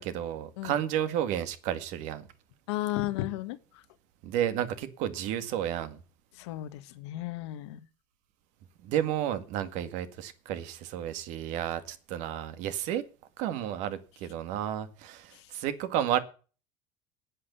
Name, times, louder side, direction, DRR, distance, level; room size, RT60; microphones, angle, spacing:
voice 1, 0.0-2.3 4.2-6.0 8.8-13.0 13.4-16.2, right 10 dB, 60° right, 2.0 m, -32 dB
voice 2, 2.7-3.6 6.4-7.8 15.3-15.4, left 16 dB, 85° left, 1.7 m, -34 dB
9.9 x 8.8 x 8.3 m
supercardioid pair, 140°, 14 cm